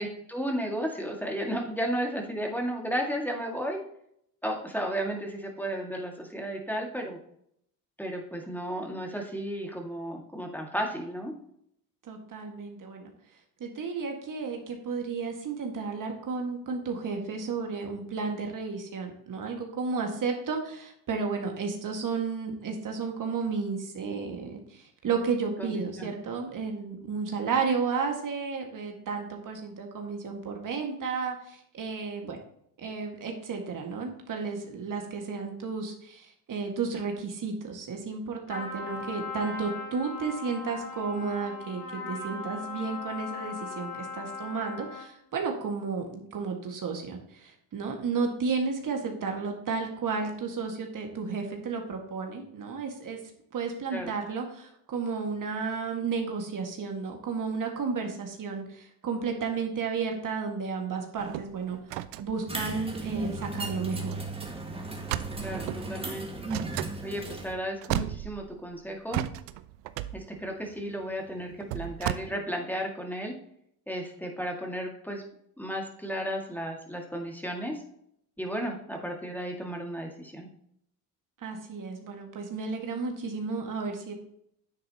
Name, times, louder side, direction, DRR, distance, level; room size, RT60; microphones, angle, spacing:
voice 1, 0.0-3.8 4.4-7.2 8.0-11.3 25.6-26.1 53.9-54.1 65.4-66.3 67.0-69.2 70.1-73.3 73.9-75.2 75.6-77.7 78.4-80.5, equal, 5° left, 1 dB, 1.9 m, -33 dB
voice 2, 12.0-13.1 13.6-32.4 32.8-53.2 53.5-61.8 62.2-64.2 81.4-84.1, right 5 dB, 45° right, 2 dB, 1.8 m, -32 dB
Trumpet, 38.5-45.2, left 4 dB, 80° left, 2.5 m, -39 dB
sound 1, 61.2-63.6 64.0-64.1 64.4-64.6 65.0-65.9 66.5-66.9 67.5-67.6 67.8-68.7 69.1-72.1, right 14 dB, 75° right, 0.6 m, -34 dB
sound 2, 62.5-67.5, right 2 dB, 15° right, 1.8 m, -35 dB
9.8 x 7.5 x 2.9 m, 0.71 s
hypercardioid pair, 65°, 43 cm